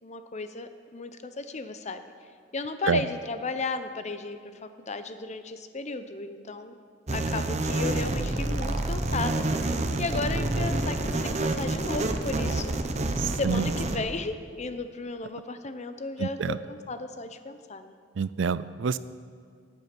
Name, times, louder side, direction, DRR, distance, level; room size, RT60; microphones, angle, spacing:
voice 1, 0.0-2.0 2.5-4.5 4.8-6.7 7.1-12.7 13.3-17.9, left 3 dB, 40° left, 9 dB, 0.7 m, -34 dB
sound 1, 7.1-14.0, right 2 dB, 35° right, 0.8 m, -28 dB
voice 2, 13.2-13.7 16.2-16.6 18.2-19.0, right 6 dB, 70° right, 16 dB, 0.4 m, -27 dB
16.5 x 8.2 x 6.0 m, 2.1 s
head